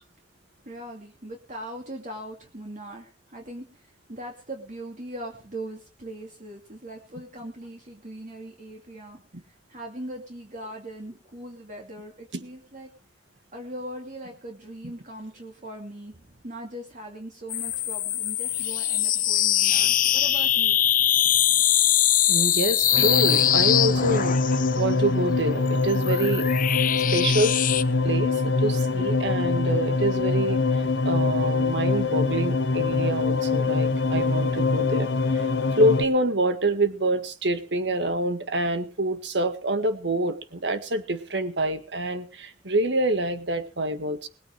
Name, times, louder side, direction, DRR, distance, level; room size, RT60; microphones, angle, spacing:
voice 1, 0.6-9.2 9.4-12.9 13.5-20.8, right 1 dB, 45° right, 1 dB, 2.7 m, -40 dB
sound 1, 17.5-24.8 25.7-27.8, left 11 dB, 50° left, 0.8 m, -22 dB
voice 2, 22.3-26.5 27.1-27.6 28.0-35.5 35.7-44.3, right 1 dB, 85° right, 9 dB, 1.8 m, -26 dB
sound 2, 22.9-36.0, left 3 dB, 85° left, 1.2 m, -24 dB
21.0 x 9.2 x 4.8 m, 0.35 s
head